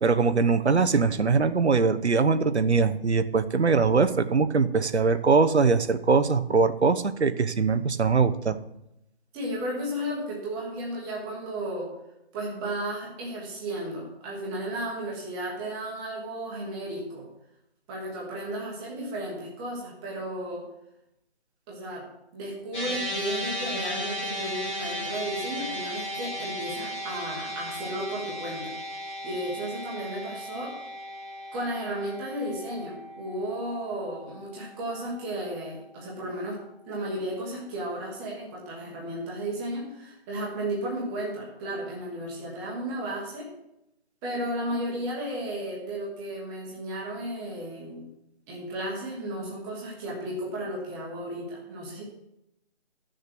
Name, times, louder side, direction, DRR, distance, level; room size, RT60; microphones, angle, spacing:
voice 1, 0.0-8.6, right 4 dB, 90° right, 11 dB, 1.1 m, -22 dB
voice 2, 9.3-11.9 12.3-17.3 17.9-20.6 21.7-22.0 22.3-28.7 29.2-30.7 31.5-36.6 36.9-43.5 44.2-48.0 48.5-52.0, right 1 dB, 5° right, -4 dB, 1.2 m, -34 dB
sound 1, 22.7-35.2, equal, 10° left, 1.6 m, -36 dB
13.5 x 6.6 x 6.0 m, 0.84 s
figure-of-eight pair, 170°, 32 cm